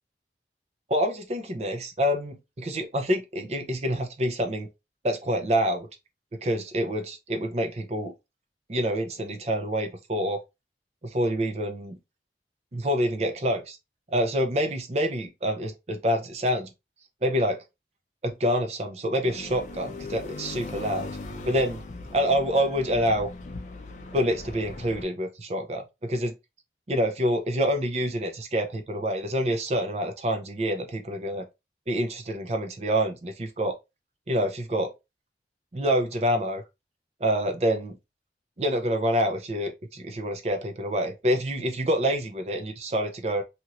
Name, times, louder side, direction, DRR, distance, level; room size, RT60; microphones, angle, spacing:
voice 1, 0.9-4.7 5.0-5.9 6.4-8.1 8.7-10.4 11.1-12.0 12.7-13.8 14.1-16.7 17.2-17.6 18.2-21.2 21.4-21.8 22.1-23.3 24.1-26.3 26.9-31.5 31.9-33.7 34.3-34.9 35.7-36.6 37.2-38.0 38.6-43.4, equal, 35° right, 0.5 m, -27 dB
sound 1, 19.2-25.0, left 2 dB, 40° left, 0.4 m, -39 dB
2.8 x 2.5 x 3.0 m
head